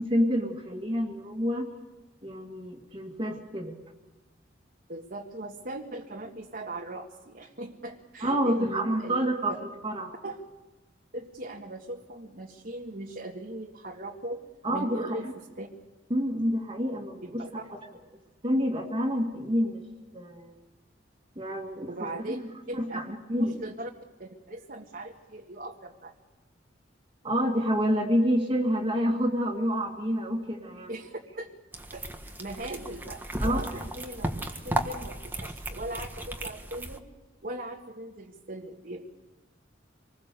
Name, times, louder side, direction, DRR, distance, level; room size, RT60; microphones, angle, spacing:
voice 1, 0.0-1.7 2.2-3.7 8.2-9.6 9.8-10.1 14.6-15.3 16.1-17.4 17.7-17.8 18.4-19.8 20.1-20.5 21.4-22.4 22.7-23.6 27.2-30.9 33.4-33.6, equal, 30° right, -2 dB, 2.2 m, -28 dB
voice 2, 4.9-9.2 10.2-10.4 11.1-14.4 14.7-15.2 15.6-15.7 17.2-17.6 21.9-22.4 22.7-23.0 23.4-23.9 24.2-26.1 30.9-31.5 31.9-34.3 34.6-37.0 37.4-39.1, right 1 dB, 50° right, -1 dB, 1.8 m, -39 dB
sound 1, 31.7-37.0, right 1 dB, 10° right, 1.5 m, -35 dB
26.5 x 20.5 x 6.9 m, 1.1 s
head